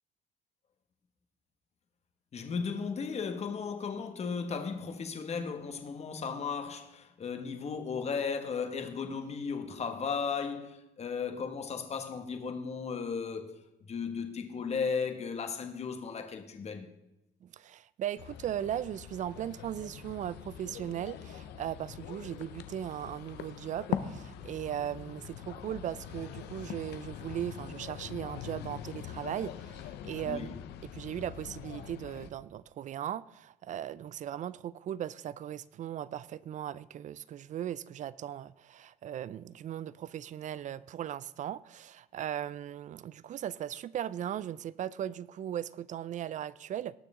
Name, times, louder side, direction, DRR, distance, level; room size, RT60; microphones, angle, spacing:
voice 1, 2.3-13.6 13.9-16.9 30.3-30.6, left 5 dB, 40° left, 1.6 m, -35 dB
voice 2, 17.4-30.5 30.8-46.9, right 10 dB, 45° right, 0.4 m, -38 dB
sound 1, 18.2-32.3, left 10 dB, 80° left, 0.9 m, -43 dB
18.5 x 6.7 x 3.7 m
cardioid pair, 110°, 17 cm